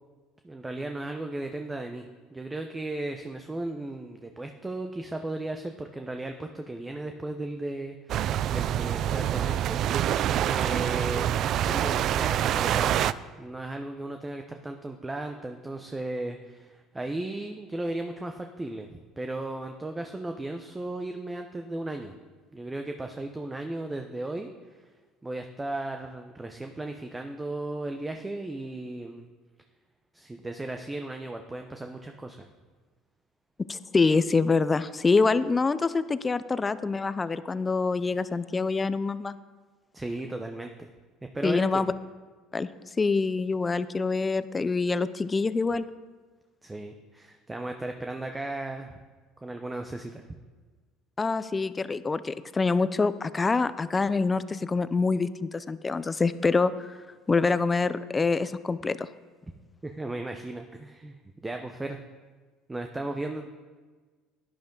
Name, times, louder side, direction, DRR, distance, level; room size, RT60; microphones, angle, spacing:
voice 1, 0.4-2.1 2.3-10.2 10.5-13.1 13.4-22.1 22.5-24.5 24.8-24.9 25.2-29.3 30.1-32.5 39.9-40.9 41.3-41.8 46.6-48.9 49.4-50.2 59.8-61.2 61.4-62.0 62.7-63.5, right 2 dB, 15° right, 5 dB, 0.9 m, -36 dB
sound 1, 8.1-13.1, right 11 dB, 55° right, 0.4 m, -26 dB
voice 2, 33.7-39.4 41.4-41.9 42.5-42.7 43.0-45.9 51.2-57.0 57.3-59.1, left 4 dB, 25° left, 15 dB, 0.6 m, -25 dB
11.5 x 10.5 x 3.9 m, 1.4 s
hypercardioid pair, 75°, 0 cm